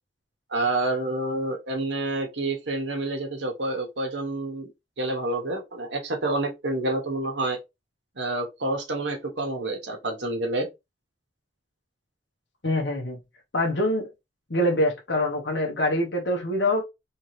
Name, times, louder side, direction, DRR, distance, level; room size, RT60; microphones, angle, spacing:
voice 1, 0.5-4.7 5.0-7.6 8.2-10.7, right 2 dB, 80° right, 1.3 m, -28 dB
voice 2, 12.6-13.2 13.5-14.1 14.5-16.8, left 1 dB, 70° left, 1.1 m, -24 dB
3.4 x 3.0 x 3.3 m
head